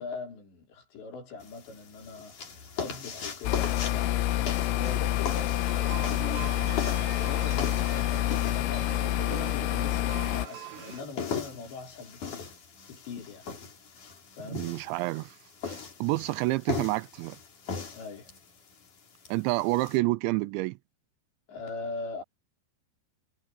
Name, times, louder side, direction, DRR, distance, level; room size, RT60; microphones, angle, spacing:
voice 1, 0.0-4.1 4.7-12.5 12.9-13.5 14.3-14.7 17.9-18.3 21.5-22.2, left 4 dB, 70° left, 6.4 m, -42 dB
sound 1, 1.4-20.0, left 6 dB, 45° left, 5.1 m, -39 dB
sound 2, 3.4-10.5, left 14 dB, 85° left, 3.2 m, -28 dB
sound 3, 5.7-11.0, right 11 dB, 70° right, 3.8 m, -43 dB
voice 2, 14.5-15.4 15.6-17.4 19.3-20.8, right 20 dB, 85° right, 2.8 m, -28 dB
omnidirectional pair, 5.4 m